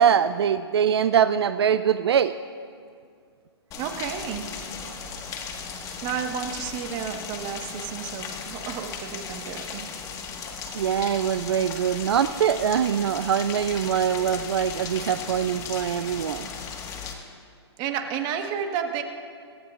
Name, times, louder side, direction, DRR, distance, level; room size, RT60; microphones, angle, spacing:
voice 1, 0.0-2.3 10.7-16.5, right 8 dB, 65° right, 12 dB, 0.5 m, -23 dB
Rain, 3.7-17.1, left 6 dB, 25° left, 1.7 m, -36 dB
voice 2, 3.8-4.4 6.0-9.9 17.8-19.0, right 8 dB, 30° right, 5 dB, 1.5 m, -31 dB
26.0 x 14.5 x 2.5 m, 2.2 s
hypercardioid pair, 130°, 14 cm